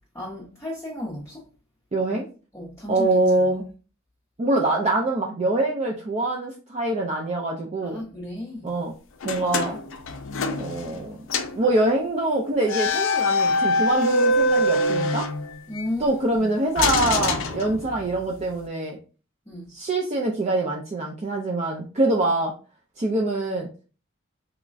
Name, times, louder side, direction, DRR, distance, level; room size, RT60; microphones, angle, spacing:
voice 1, 0.1-1.5 2.5-3.1 7.8-8.7 15.7-16.5 19.5-19.7, left 1 dB, 15° left, 0.7 m, -34 dB
voice 2, 1.9-2.3 2.9-3.7 4.4-8.0 8.6-9.0 9.2-9.8 10.5-11.2 11.6-15.3 16.0-19.0 19.7-22.5 23.0-23.7, right 2 dB, 30° right, 0.4 m, -24 dB
sound 1, 9.2-11.0 11.3-11.6 12.6-15.9 16.7-18.2, left 2 dB, 65° left, 0.5 m, -24 dB
3.5 x 3.1 x 2.5 m
head